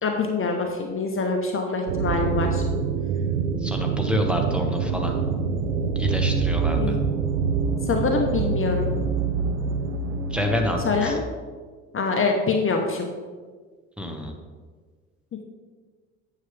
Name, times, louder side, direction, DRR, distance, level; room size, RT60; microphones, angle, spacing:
voice 1, 0.0-2.6 6.7-7.0 7.9-8.9 10.8-11.2 11.9-13.1, left 4 dB, 35° left, 2 dB, 1.0 m, -24 dB
sound 1, 1.9-11.1, right 5 dB, 85° right, 0.6 m, -25 dB
voice 2, 3.6-5.2 5.9-7.0 10.3-11.2 14.0-14.3, left 1 dB, 5° right, 2 dB, 1.4 m, -27 dB
9.4 x 6.9 x 3.4 m, 1.5 s
figure-of-eight pair, 50°, 37 cm